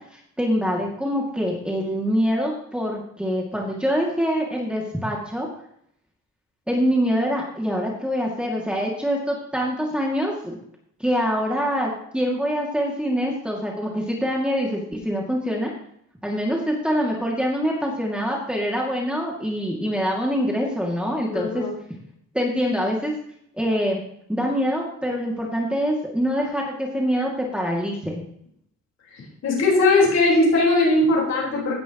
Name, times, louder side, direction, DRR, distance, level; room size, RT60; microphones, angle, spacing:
voice 1, 0.1-5.5 6.7-10.6 11.0-15.7 16.2-21.7 22.3-23.1 23.6-24.0 24.3-28.2, equal, 5° right, -2 dB, 2.4 m, -25 dB
voice 2, 21.3-21.7 29.4-31.8, left 2 dB, 65° left, -4 dB, 4.6 m, -19 dB
16.5 x 10.5 x 3.0 m, 0.70 s
cardioid pair, 125°, 29 cm